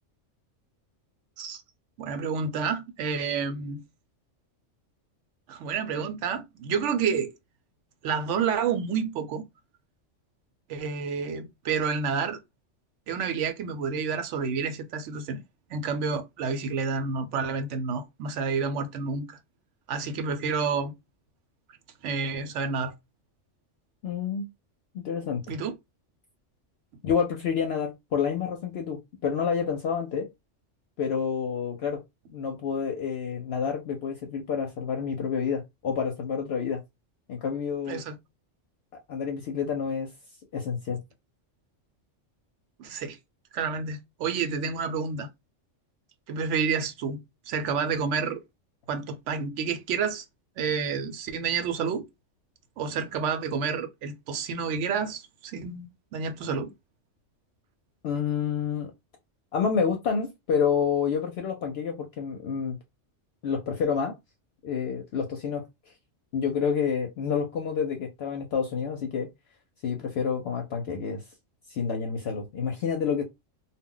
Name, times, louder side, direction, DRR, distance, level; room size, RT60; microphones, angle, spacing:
voice 1, 2.0-3.8 5.5-7.3 8.0-9.4 10.7-12.4 13.1-15.4 15.7-19.4 19.9-20.9 22.0-22.9 25.5-25.7 37.9-38.2 42.8-43.2 43.5-45.3 46.3-48.4 48.9-50.3 50.6-52.0 52.8-56.7, right 5 dB, 75° right, 0.9 m, -29 dB
voice 2, 24.0-24.5 24.9-25.4 27.0-30.3 31.0-32.0 32.3-36.8 37.3-38.0 39.1-40.1 40.5-41.0 58.0-58.9 59.5-62.8 63.4-64.1 64.6-65.7 66.3-69.3 69.8-71.2 71.7-73.2, left 6 dB, 65° left, 0.7 m, -28 dB
2.2 x 2.1 x 3.7 m
omnidirectional pair, 1.3 m